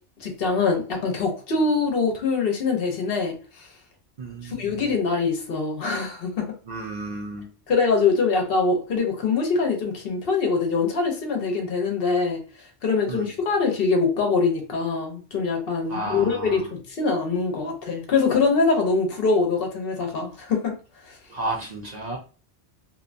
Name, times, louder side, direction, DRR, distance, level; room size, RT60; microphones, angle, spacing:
voice 1, 0.2-3.7 4.4-6.5 7.7-12.4 12.8-20.8 21.1-21.2, left 4 dB, 65° left, 2 dB, 0.9 m, -23 dB
voice 2, 4.2-4.8 6.7-7.5 13.1-13.3 15.9-16.6 21.3-22.2, right 2 dB, 50° right, -1 dB, 0.6 m, -32 dB
2.6 x 2.2 x 2.4 m, 0.37 s
omnidirectional pair, 1.1 m